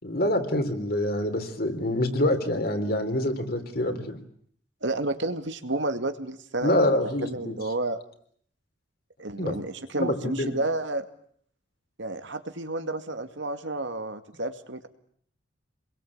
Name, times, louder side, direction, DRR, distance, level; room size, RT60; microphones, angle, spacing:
voice 1, 0.0-4.2 6.6-7.6 9.4-9.5 10.0-10.5, left 1 dB, 55° left, 6 dB, 3.7 m, -26 dB
voice 2, 4.8-8.0 9.2-11.0 12.0-14.9, right 2 dB, 75° right, 8 dB, 2.2 m, -31 dB
28.5 x 22.0 x 8.7 m, 0.63 s
head